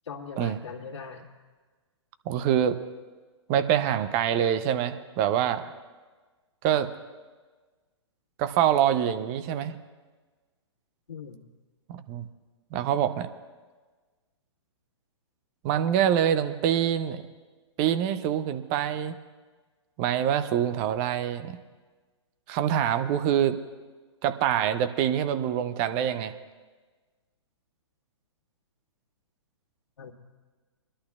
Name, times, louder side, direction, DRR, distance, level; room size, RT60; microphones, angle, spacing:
voice 1, 0.1-1.3 11.1-11.4 30.0-30.1, left 5 dB, 75° left, -1 dB, 1.9 m, -40 dB
voice 2, 2.3-2.8 3.5-5.7 6.6-6.9 8.4-9.8 11.9-12.3 12.7-13.3 15.6-17.2 17.8-19.1 20.0-21.6 22.5-23.6 24.2-26.3, right 10 dB, 35° right, 11 dB, 0.6 m, -25 dB
27.0 x 11.5 x 2.4 m, 1.3 s
hypercardioid pair, 120°, 15 cm